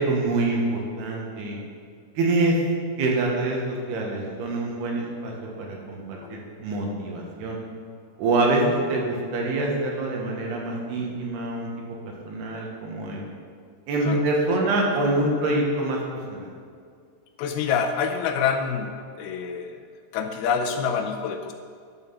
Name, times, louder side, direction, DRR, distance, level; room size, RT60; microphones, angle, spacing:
voice 1, 0.0-1.6 2.2-2.6 3.0-5.3 5.6-7.6 8.2-11.7 12.3-13.2 13.9-16.0 16.3-16.5, right 2 dB, 75° right, -1 dB, 3.5 m, -25 dB
voice 2, 6.2-6.5 14.0-14.2 17.4-19.8 20.1-21.5, left 6 dB, 85° left, 4 dB, 2.3 m, -27 dB
11.5 x 7.7 x 5.9 m, 2.2 s
omnidirectional pair, 4.8 m